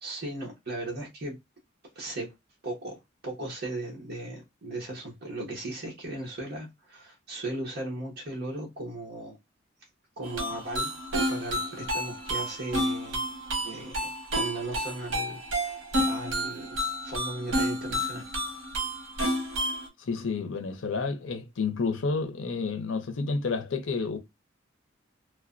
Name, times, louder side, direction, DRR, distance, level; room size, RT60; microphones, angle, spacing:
voice 1, 0.0-1.3 1.9-2.3 2.6-9.4 10.2-10.9 11.3-13.2 13.6-18.3, right 2 dB, 55° right, 0.9 m, -37 dB
sound 1, 10.2-19.9, equal, 80° right, 1.0 m, -30 dB
voice 2, 20.0-24.2, left 4 dB, 75° left, 0.6 m, -30 dB
3.1 x 2.1 x 2.4 m
head